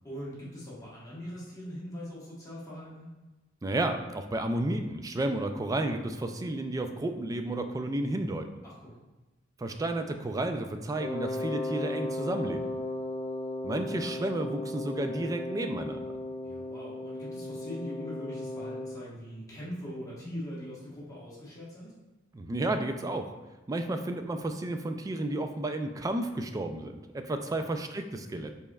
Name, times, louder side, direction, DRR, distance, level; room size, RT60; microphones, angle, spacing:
voice 1, 0.0-3.1 8.6-8.9 16.4-21.9 27.4-27.7, equal, 20° left, -7 dB, 1.2 m, -41 dB
voice 2, 3.6-8.5 9.6-12.8 13.6-16.0 22.3-23.3 23.7-28.5, right 1 dB, 20° right, 6 dB, 0.3 m, -32 dB
Wind instrument woodwind instrument, 11.0-19.0, left 1 dB, 55° left, 0.5 m, -36 dB
5.2 x 4.1 x 2.3 m, 1.1 s
head